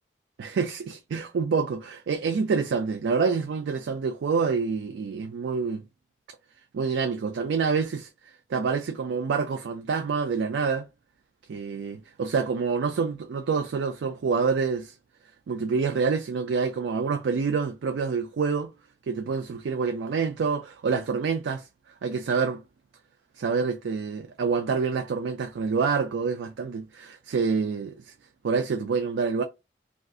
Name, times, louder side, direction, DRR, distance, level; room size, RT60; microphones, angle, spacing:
voice 1, 0.4-5.8 6.7-8.1 8.5-10.8 11.5-14.9 15.5-18.7 19.1-21.7 22.0-22.6 23.4-28.1 28.4-29.4, right 5 dB, 85° right, 0.4 m, -27 dB
2.4 x 2.4 x 3.6 m
head